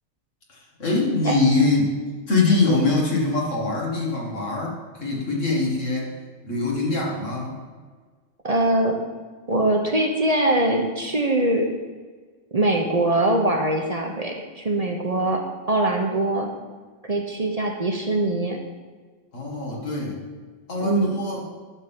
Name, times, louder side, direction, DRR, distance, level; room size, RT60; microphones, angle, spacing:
voice 1, 0.5-1.9 2.3-6.2 6.4-7.6 19.3-20.2 20.7-21.4, left 3 dB, 85° left, -2 dB, 2.2 m, -23 dB
voice 2, 8.4-9.0 9.5-11.7 12.5-15.4 15.7-16.5 17.0-18.6 20.8-21.1, right 1 dB, 35° right, 2 dB, 0.9 m, -22 dB
11.0 x 3.7 x 7.3 m, 1.5 s
omnidirectional pair, 1.3 m